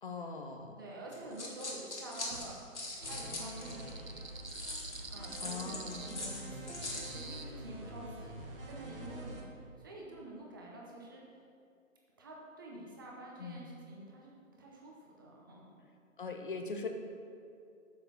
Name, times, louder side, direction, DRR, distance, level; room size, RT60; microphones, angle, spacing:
voice 1, 0.0-0.8 5.4-6.2 13.4-13.7 16.2-16.9, left 4 dB, 40° left, 4 dB, 0.8 m, -41 dB
voice 2, 0.7-2.6 3.0-4.3 5.1-8.4 8.7-11.2 12.2-14.3 14.6-15.8, right 2 dB, 15° right, -2 dB, 0.8 m, -48 dB
sound 1, 1.1-3.9 4.5-7.2, left 2 dB, 60° left, 2.0 m, -42 dB
sound 2, 2.8-7.4, right 4 dB, 80° right, 0.9 m, -48 dB
sound 3, 3.0-9.4, right 1 dB, 45° right, 1.5 m, -46 dB
6.9 x 6.7 x 6.1 m, 2.5 s
figure-of-eight pair, 140°, 40 cm